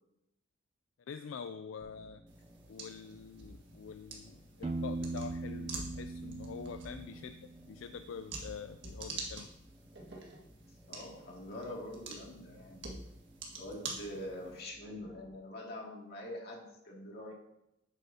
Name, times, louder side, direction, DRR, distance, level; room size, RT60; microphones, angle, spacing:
voice 1, 1.1-2.2 2.7-7.4 7.7-9.5, left 6 dB, 75° left, 10 dB, 0.4 m, -45 dB
sound 1, 1.8-15.4, equal, 5° right, 0.8 m, -60 dB
sound 2, 2.3-14.6, right 3 dB, 60° right, 1.8 m, -47 dB
Piano, 4.6-8.3, right 2 dB, 30° right, 0.5 m, -40 dB
voice 2, 10.9-12.9 13.6-17.3, left 1 dB, 55° left, -2 dB, 2.3 m, -44 dB
10.0 x 8.3 x 2.8 m, 0.85 s
head